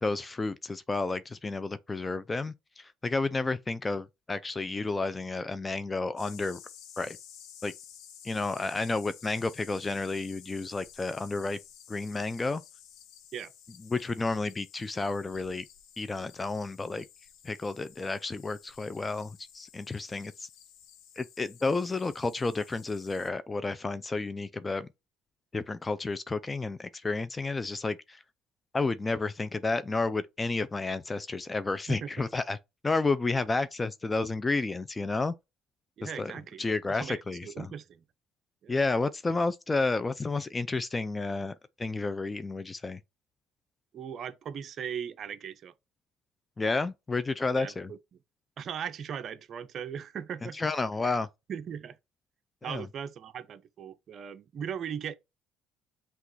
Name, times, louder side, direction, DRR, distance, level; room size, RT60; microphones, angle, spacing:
voice 1, 0.0-6.6 7.0-7.2 7.6-7.7 8.2-11.6 11.9-12.6 13.8-15.7 16.0-17.1 17.4-20.5 21.2-24.9 25.5-28.2 28.7-32.6 32.8-35.3 36.0-36.3 36.6-37.7 38.7-43.0 46.6-47.9 50.5-51.3 52.6-52.9, left 3 dB, 20° left, 0.4 m, -31 dB
sound 1, 6.2-23.3, left 9 dB, 75° left, 0.9 m, -53 dB
voice 2, 36.0-38.0 38.6-38.8 43.9-45.7 47.5-48.0 48.6-50.6 51.0-51.2 51.5-52.0 52.6-55.1, right 8 dB, 50° right, 0.6 m, -38 dB
5.8 x 2.4 x 3.1 m
supercardioid pair, 90°, 0 cm